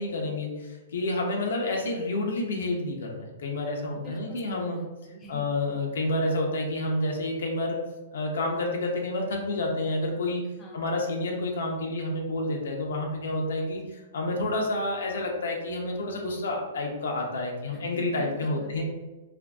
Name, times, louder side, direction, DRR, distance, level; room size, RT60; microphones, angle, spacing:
voice 1, 0.0-4.8 5.3-7.8 8.1-10.4 10.7-13.8 14.1-18.8, left 2 dB, 80° left, 0 dB, 0.6 m, -29 dB
voice 2, 3.9-5.4 10.6-10.8 13.8-14.0 17.7-18.8, equal, 20° left, -3 dB, 0.6 m, -45 dB
2.9 x 2.5 x 2.3 m, 1.1 s
hypercardioid pair, 140°, 0 cm